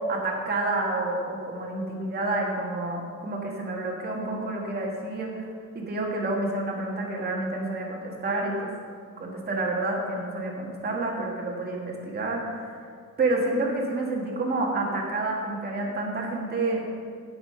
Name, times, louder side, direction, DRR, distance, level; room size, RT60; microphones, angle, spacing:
voice 1, 0.1-5.5 5.8-8.7 9.2-12.8 13.2-16.8, right 2 dB, 30° right, -2 dB, 1.7 m, -29 dB
16.0 x 5.9 x 5.7 m, 2.1 s
cardioid pair, 180°, 31 cm